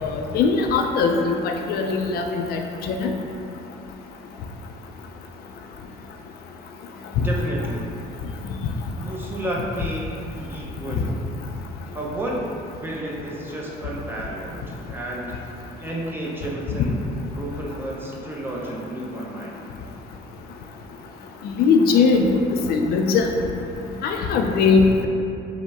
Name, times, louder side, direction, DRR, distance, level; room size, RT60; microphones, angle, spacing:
voice 1, 0.0-3.1 7.2-7.3 21.4-22.2 22.7-23.3 24.0-25.1, left 5 dB, 65° left, 3 dB, 0.4 m, -20 dB
voice 2, 7.2-7.9 9.0-11.1 11.9-12.5 12.8-15.3 15.8-17.0 17.3-19.5, right 1 dB, 10° right, -4 dB, 0.6 m, -31 dB
5.0 x 2.1 x 3.5 m, 2.6 s
cardioid pair, 110°, 17 cm